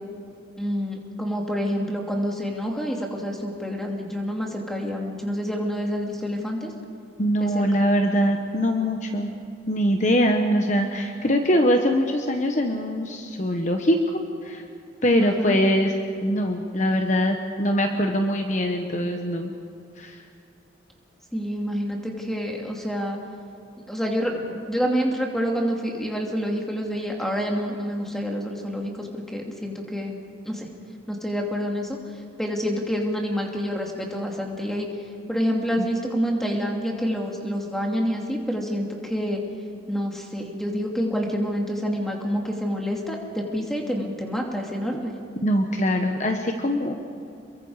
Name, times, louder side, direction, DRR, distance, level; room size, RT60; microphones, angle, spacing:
voice 1, 0.6-6.7 7.4-7.7 15.2-15.6 21.3-23.2 23.9-30.2 30.4-30.7 31.1-32.0 32.4-34.9 35.3-39.4 39.9-45.1, equal, ahead, 0 dB, 2.5 m, -27 dB
voice 2, 7.2-9.3 9.7-14.0 14.4-14.6 15.0-15.9 16.2-19.5 20.0-20.2 35.8-35.9 45.4-46.9, equal, 40° left, 4 dB, 1.1 m, -22 dB
28.5 x 22.5 x 4.9 m, 2.6 s
head